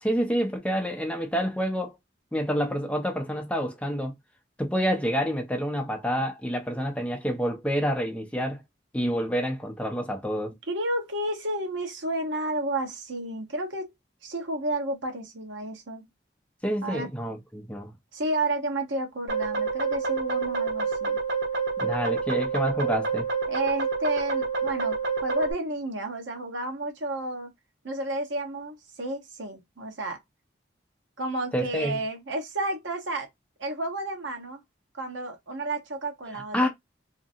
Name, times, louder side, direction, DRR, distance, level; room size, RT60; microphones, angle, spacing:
voice 1, 0.0-2.0 2.3-4.2 4.6-8.6 8.9-10.6 16.6-17.9 21.8-23.3 31.5-32.0 36.5-36.7, equal, 5° left, 0.5 m, -28 dB
voice 2, 10.7-13.9 14.2-16.1 16.8-17.1 18.1-21.2 23.5-27.5 27.8-30.2 31.2-33.3 33.6-34.6 34.9-36.7, right 1 dB, 85° right, 1.0 m, -31 dB
sound 1, 19.3-25.5, right 4 dB, 65° right, 1.2 m, -28 dB
2.8 x 2.6 x 2.5 m
head